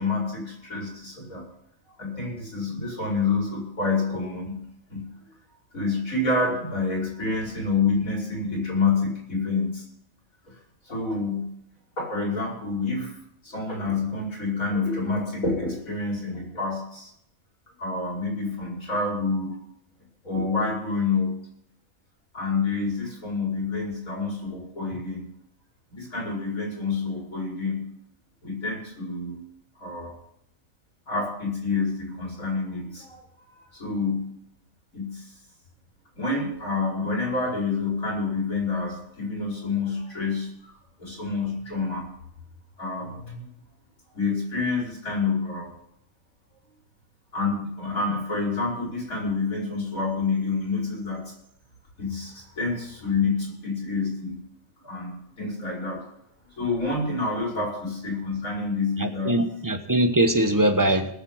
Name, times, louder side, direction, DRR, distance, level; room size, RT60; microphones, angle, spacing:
voice 1, 0.0-1.4 2.0-4.6 4.9-5.1 5.7-9.8 10.4-10.5 10.8-11.5 12.0-13.2 13.4-17.1 17.8-19.6 20.2-21.3 22.3-25.3 25.9-27.8 28.4-29.4 29.8-30.1 31.1-33.2 33.6-34.3 34.9-35.3 36.2-40.7 41.0-42.1 42.8-43.5 44.1-45.7 47.3-51.3 52.0-54.4 54.8-56.0 56.6-59.3, left 4 dB, 85° left, -3 dB, 5.7 m, -28 dB
voice 2, 59.0-61.1, right 1 dB, 15° right, 6 dB, 1.1 m, -22 dB
19.5 x 7.3 x 5.7 m, 0.74 s
omnidirectional pair, 1.4 m